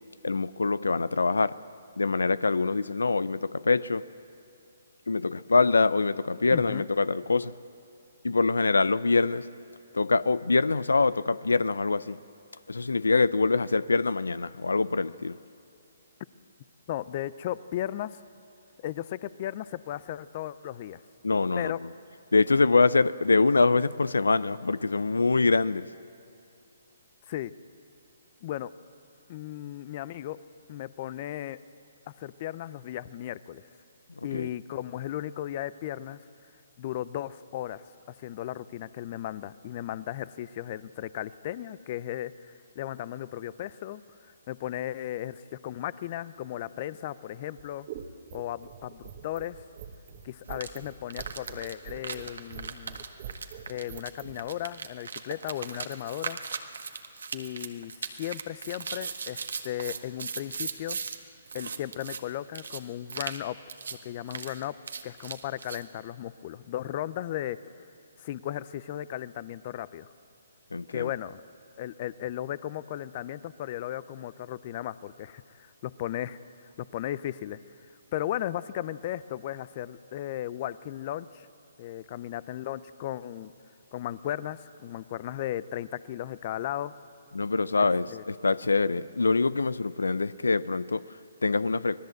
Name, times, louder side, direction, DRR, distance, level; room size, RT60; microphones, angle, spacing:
voice 1, 0.2-1.6 2.0-4.0 5.1-7.5 8.2-9.5 9.9-12.2 12.7-15.4 21.2-21.8 22.3-25.9 34.3-34.5 70.7-71.1 87.3-92.0, left 3 dB, 90° left, 0.5 m, -24 dB
voice 2, 6.5-6.9 16.9-18.2 18.8-21.0 21.6-21.8 27.3-27.5 28.4-28.7 29.3-30.4 30.7-31.6 32.2-33.6 34.2-36.2 36.8-37.8 38.2-44.0 44.5-47.9 48.3-49.6 50.2-53.0 53.7-56.4 57.3-61.0 61.5-63.6 64.0-64.7 65.0-67.6 68.2-70.1 70.9-71.4 71.8-76.4 76.8-77.6 78.1-81.5 81.8-83.5 83.9-86.9 88.1-88.2, left 12 dB, 40° left, 0.6 m, -35 dB
sound 1, 47.5-54.4, right 9 dB, 40° right, 1.5 m, -44 dB
sound 2, 50.5-50.7 51.1-61.2 61.5-62.2 62.5-62.8 63.1-63.4 63.7-64.0 64.3-65.8, right 5 dB, 75° right, 1.6 m, -38 dB
25.5 x 18.5 x 7.9 m
hypercardioid pair, 145°, 0 cm